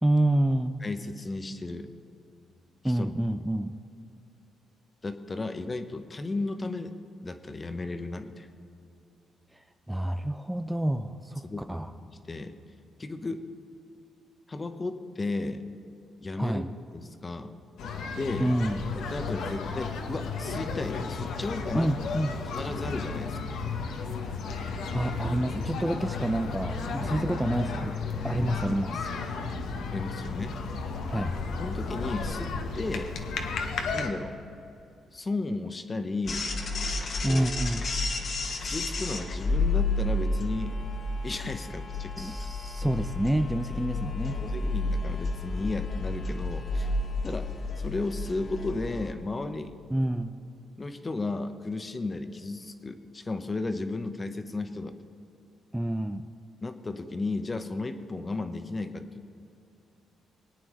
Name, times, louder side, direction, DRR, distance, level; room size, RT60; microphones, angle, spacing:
voice 1, 0.0-0.8 2.8-3.7 9.5-11.9 16.4-16.7 18.4-18.8 21.7-22.4 24.6-28.0 28.2-29.1 31.1-31.4 37.2-37.9 42.2-44.4 49.9-50.4 55.7-56.3, right 1 dB, 5° right, 7 dB, 0.4 m, -28 dB
voice 2, 0.8-1.9 2.8-3.1 5.0-6.9 7.2-8.5 11.4-11.7 12.0-12.6 13.0-13.4 14.5-15.6 16.2-16.6 16.9-17.5 18.1-18.5 18.9-21.9 22.5-23.4 27.0-27.2 28.4-28.5 29.9-30.6 31.6-33.1 33.9-34.3 35.1-36.5 37.2-37.5 38.6-40.8 41.2-42.1 44.3-46.9 47.2-47.5 47.8-49.8 50.8-55.0 56.6-59.3, left 3 dB, 25° left, 8 dB, 0.8 m, -34 dB
sound 1, 17.8-34.1, left 4 dB, 75° left, 1.0 m, -33 dB
sound 2, 36.3-49.1, left 2 dB, 50° left, 1.4 m, -31 dB
21.5 x 9.1 x 3.1 m, 2.7 s
cardioid pair, 90°, 0 cm